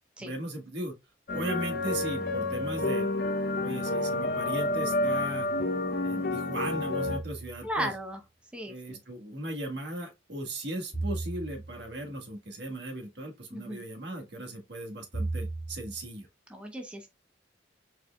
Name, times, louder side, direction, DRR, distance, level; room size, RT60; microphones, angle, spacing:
voice 1, 0.2-0.9 1.3-3.1 3.6-5.5 6.0-7.9 8.7-16.3, right 1 dB, 65° right, 1.6 m, -37 dB
sound 1, 1.3-7.2, left 2 dB, 50° left, 0.8 m, -29 dB
sound 2, 7.0-7.8 10.9-12.0 15.1-16.1, right 2 dB, 20° left, 2.1 m, -36 dB
voice 2, 7.6-8.2 8.5-9.0 13.5-13.8 16.5-17.1, equal, 5° right, 0.8 m, -35 dB
4.8 x 4.4 x 2.3 m
head